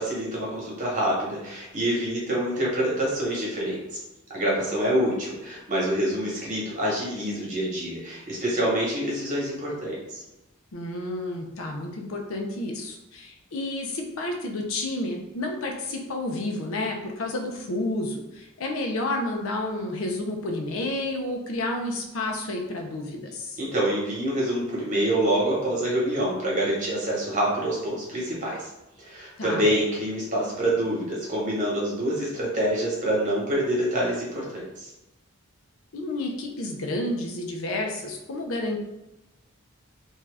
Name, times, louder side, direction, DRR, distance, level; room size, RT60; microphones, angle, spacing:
voice 1, 0.0-3.8 4.3-10.2 23.6-28.7 29.0-34.9, right 1 dB, 35° right, -5 dB, 1.0 m, -26 dB
voice 2, 10.7-23.6 29.4-29.7 35.9-38.8, left 2 dB, 75° left, 2 dB, 0.5 m, -30 dB
2.7 x 2.3 x 3.2 m, 0.97 s
head